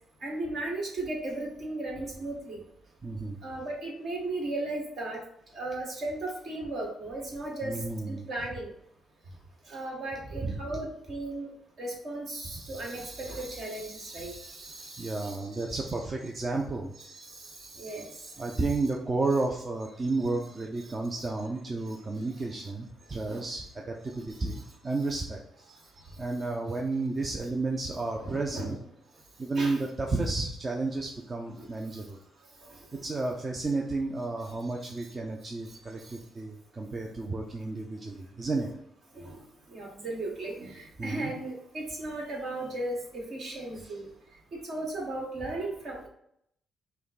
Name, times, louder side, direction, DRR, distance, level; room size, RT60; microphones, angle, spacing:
voice 1, 0.2-2.6 3.4-5.2 5.5-7.7 8.1-8.7 9.7-11.5 11.8-15.7 17.0-18.6 23.3-23.5 24.3-24.6 28.2-28.7 29.5-29.8 31.6-31.7 35.0-35.1 39.1-39.4 39.7-44.1 44.5-46.1, right 2 dB, 60° right, -1 dB, 1.6 m, -36 dB
voice 2, 3.0-3.4 7.6-8.3 10.4-10.6 15.0-16.9 18.4-25.7 26.2-28.8 29.4-32.2 32.7-38.7 41.0-41.3 43.8-44.0, right 3 dB, 30° right, 1 dB, 0.5 m, -32 dB
5.5 x 2.2 x 4.0 m, 0.73 s
cardioid pair, 90°, 0 cm